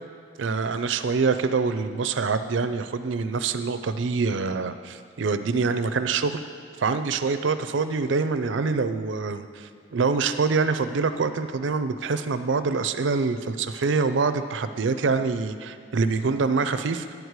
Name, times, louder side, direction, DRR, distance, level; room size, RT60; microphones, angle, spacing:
voice 1, 0.4-6.4 6.8-17.1, right 4 dB, 85° right, 10 dB, 0.5 m, -25 dB
11.0 x 4.7 x 8.1 m, 2.3 s
head